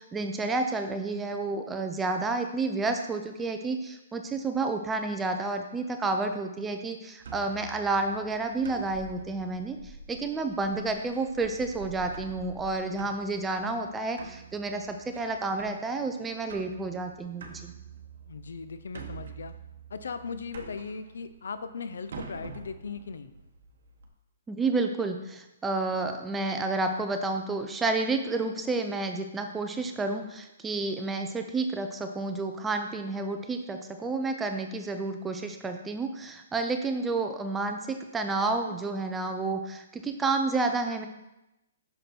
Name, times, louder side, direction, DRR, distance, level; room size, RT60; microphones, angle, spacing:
voice 1, 0.0-17.7 24.5-41.1, right 3 dB, 10° right, 5 dB, 0.4 m, -30 dB
sound 1, 7.2-24.1, right 4 dB, 60° right, 1.0 m, -47 dB
voice 2, 18.3-19.5 19.9-23.3, left 5 dB, 80° left, 11 dB, 0.5 m, -38 dB
6.1 x 5.2 x 4.3 m, 0.92 s
hypercardioid pair, 160°, 0 cm